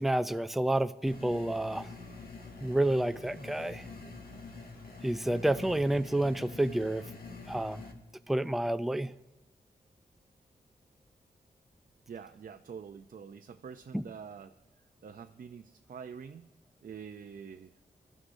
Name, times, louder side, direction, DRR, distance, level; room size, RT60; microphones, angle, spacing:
voice 1, 0.0-1.9 2.6-3.8 5.0-7.0 7.5-7.8 8.3-9.1 13.9-14.0, right 1 dB, ahead, 12 dB, 0.4 m, -29 dB
sound 1, 1.1-7.9, left 3 dB, 60° left, 1.8 m, -46 dB
voice 2, 12.1-14.6 15.0-16.5 16.8-17.7, right 6 dB, 55° right, 7 dB, 0.5 m, -46 dB
23.0 x 13.0 x 2.7 m, 1.0 s
wide cardioid pair, 115°, 17 cm